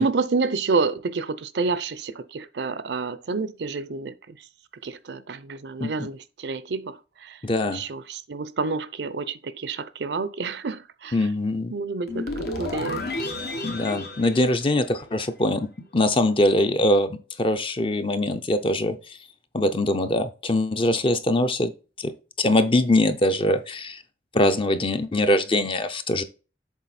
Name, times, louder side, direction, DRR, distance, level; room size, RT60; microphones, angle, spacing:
voice 1, 0.0-4.1 4.8-7.4 7.7-11.2 11.7-13.1, right 4 dB, 75° right, 0.6 m, -28 dB
voice 2, 7.4-7.8 11.1-11.7 13.6-15.7 15.9-19.0 19.5-21.7 22.0-24.0 24.3-26.2, left 1 dB, 30° left, 0.6 m, -22 dB
sound 1, 12.1-15.3, left 2 dB, 60° left, 1.1 m, -32 dB
7.2 x 4.0 x 4.2 m
head